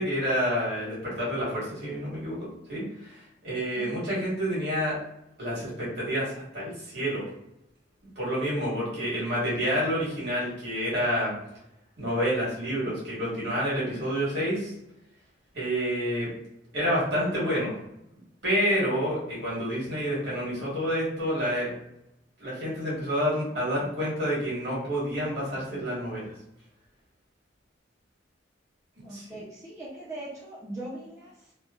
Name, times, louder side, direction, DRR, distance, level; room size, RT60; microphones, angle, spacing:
voice 1, 0.0-5.0 5.4-7.3 8.1-11.3 12.0-14.7 15.5-16.3 16.7-17.7 18.4-21.7 22.4-26.3 29.1-29.2, equal, 60° right, -6 dB, 1.4 m, -28 dB
voice 2, 29.0-31.5, right 1 dB, 15° right, -7 dB, 0.5 m, -40 dB
2.9 x 2.1 x 2.3 m, 0.81 s
head